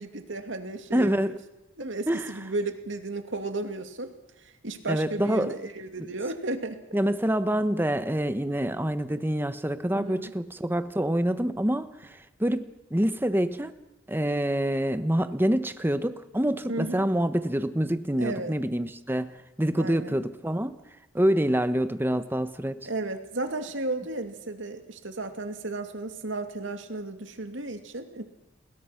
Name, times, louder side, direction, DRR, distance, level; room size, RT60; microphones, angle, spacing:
voice 1, 0.0-1.4 1.8-4.1 4.6-6.8 9.9-10.3 16.7-17.0 18.2-18.5 19.8-20.2 22.9-28.2, right 2 dB, 70° right, 6 dB, 2.6 m, -34 dB
voice 2, 0.9-1.3 1.8-2.3 4.9-5.5 6.9-13.7 14.1-20.8 21.1-22.9, right 1 dB, 10° right, 11 dB, 1.1 m, -26 dB
29.0 x 21.5 x 6.0 m, 0.99 s
head